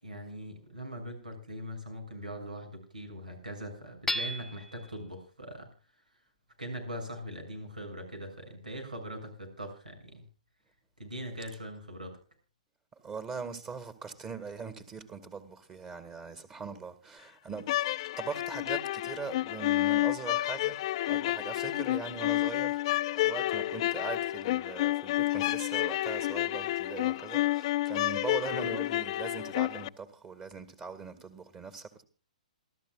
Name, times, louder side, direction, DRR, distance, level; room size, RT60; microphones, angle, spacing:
voice 1, 0.0-5.7 6.6-10.2 11.0-12.2, equal, 90° right, 7.2 m, -41 dB
Hammer / Chink clink, 4.1-4.9, equal, 5° left, 0.6 m, -33 dB
voice 2, 13.0-17.8 18.2-20.8 21.1-22.8 23.1-32.0, right 5 dB, 20° right, 2.0 m, -41 dB
sound 1, 17.6-29.9, left 16 dB, 45° left, 0.7 m, -30 dB
28.0 x 12.5 x 2.4 m
figure-of-eight pair, 120°, 4 cm